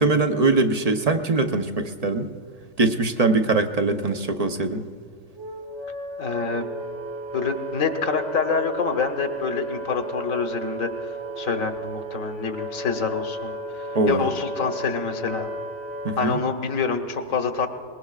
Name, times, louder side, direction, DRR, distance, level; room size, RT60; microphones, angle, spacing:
voice 1, 0.0-2.3 2.8-4.8 13.9-14.3 16.0-16.4, right 3 dB, 35° right, 6 dB, 0.7 m, -22 dB
Wind instrument woodwind instrument, 5.4-16.2, right 1 dB, 60° right, 1.5 m, -34 dB
voice 2, 6.2-6.6 7.3-10.9 11.4-13.5 14.1-15.5 16.2-17.7, left 5 dB, 85° left, 5 dB, 1.5 m, -26 dB
24.0 x 20.5 x 2.4 m, 2.3 s
omnidirectional pair, 1.4 m